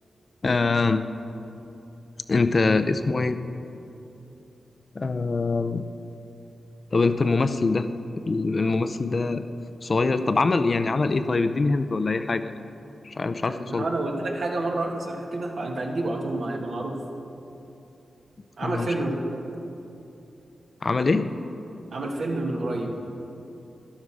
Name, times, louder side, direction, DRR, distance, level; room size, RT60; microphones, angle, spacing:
voice 1, 0.4-1.1 2.3-3.4 5.0-5.8 6.9-7.9 8.3-9.4 9.8-12.4 13.0-13.9 18.6-18.9 20.8-21.3, left 3 dB, 40° left, 10 dB, 0.5 m, -23 dB
voice 2, 13.4-17.0 18.6-19.2 21.9-23.0, right 2 dB, 65° right, 1 dB, 1.5 m, -29 dB
12.0 x 11.5 x 4.9 m, 2.9 s
wide cardioid pair, 95°, 0 cm